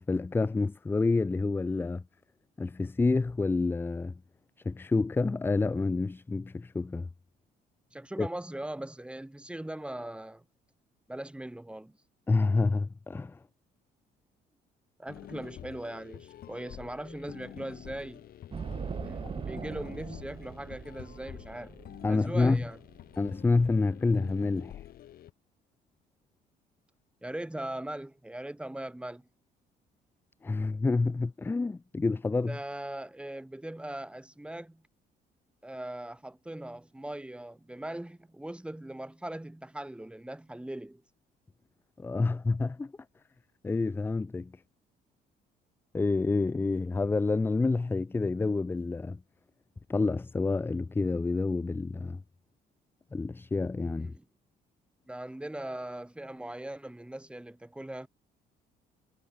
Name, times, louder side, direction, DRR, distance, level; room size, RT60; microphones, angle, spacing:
voice 1, 0.0-2.0 2.6-4.1 4.7-7.1 8.2-8.3 12.3-13.4 22.0-22.6 23.2-24.8 30.4-32.6 42.0-42.9 43.6-44.5 45.9-49.2 49.9-52.2 53.1-54.1, left 3 dB, 10° left, 0.4 m, -28 dB
voice 2, 7.9-10.4 11.1-12.0 15.0-18.3 19.0-22.8 27.2-29.3 32.4-34.8 35.6-41.0 54.0-54.3 55.1-58.1, right 1 dB, 5° right, 3.8 m, -40 dB
sound 1, 15.1-25.3, left 12 dB, 60° left, 5.9 m, -47 dB
sound 2, 18.5-23.4, right 6 dB, 30° right, 1.7 m, -41 dB
cardioid pair, 110°, 17 cm